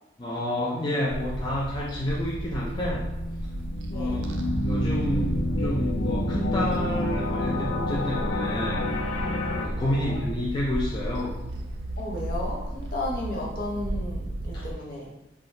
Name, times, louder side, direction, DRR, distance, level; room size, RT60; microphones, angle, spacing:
voice 1, 0.2-3.0 3.9-5.3 5.6-8.9 9.5-11.3 14.5-14.6, left 1 dB, 25° left, -5 dB, 0.4 m, -29 dB
sound 1, 1.1-14.8, right 1 dB, 70° right, 0.4 m, -34 dB
sound 2, 2.7-9.7, left 1 dB, 85° left, 0.4 m, -29 dB
voice 2, 3.9-4.2 9.9-10.2 12.0-15.1, left 1 dB, 55° left, -3 dB, 0.8 m, -34 dB
3.4 x 2.3 x 2.6 m, 0.93 s
head